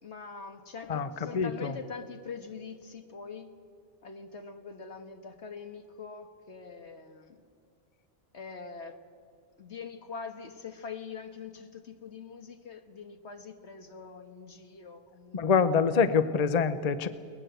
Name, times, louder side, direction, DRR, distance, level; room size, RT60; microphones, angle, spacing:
voice 1, 0.0-3.5 4.0-7.4 8.3-9.0 9.6-15.6, left 5 dB, 75° left, 7 dB, 1.8 m, -43 dB
voice 2, 0.9-1.7 15.3-17.1, left 6 dB, 40° left, 12 dB, 0.8 m, -25 dB
21.5 x 19.5 x 8.0 m, 2.3 s
omnidirectional pair, 1.2 m